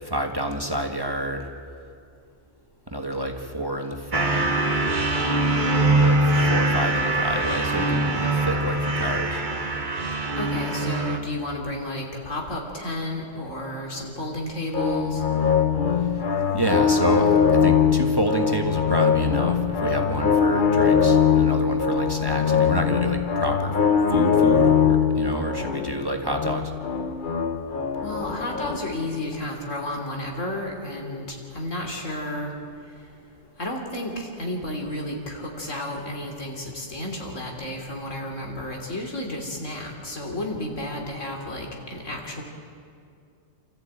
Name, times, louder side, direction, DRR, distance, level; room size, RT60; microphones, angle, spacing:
voice 1, 0.0-1.5 2.9-4.5 5.8-9.4 16.0-16.1 16.5-23.7 24.1-26.7, right 1 dB, 20° right, 3 dB, 1.5 m, -28 dB
sound 1, 4.1-11.2, right 2 dB, 40° right, 1.6 m, -23 dB
voice 2, 10.4-15.2 28.0-32.5 33.6-42.4, left 1 dB, 85° left, 0 dB, 3.6 m, -32 dB
sound 2, 14.7-28.8, left 7 dB, 45° left, 1.1 m, -21 dB
28.5 x 14.0 x 8.9 m, 2.4 s
omnidirectional pair, 1.3 m